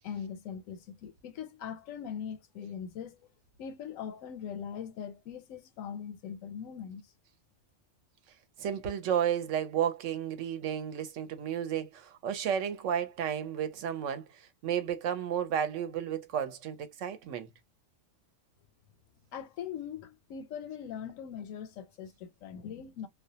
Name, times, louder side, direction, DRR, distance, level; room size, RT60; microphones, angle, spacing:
voice 1, 0.0-3.2 3.6-7.1 19.3-23.1, left 8 dB, 85° left, 1.0 m, -41 dB
voice 2, 8.6-17.5, right 9 dB, 75° right, 1.0 m, -32 dB
2.3 x 2.2 x 2.7 m
omnidirectional pair, 1.3 m